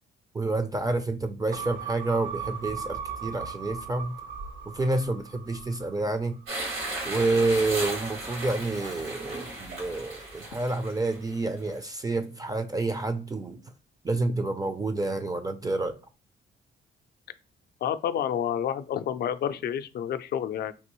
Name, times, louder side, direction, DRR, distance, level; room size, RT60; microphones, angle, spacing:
voice 1, 0.3-4.2 4.7-6.4 7.1-13.6 14.0-16.0, right 2 dB, 20° right, 0.4 m, -28 dB
sound 1, 1.5-6.2 6.6-6.7, right 6 dB, 65° right, 0.6 m, -38 dB
sound 2, 6.5-11.7, right 2 dB, 85° right, 1.8 m, -35 dB
voice 2, 17.8-20.7, left 9 dB, 55° left, 0.4 m, -29 dB
3.4 x 2.6 x 3.0 m
cardioid pair, 90°, 20 cm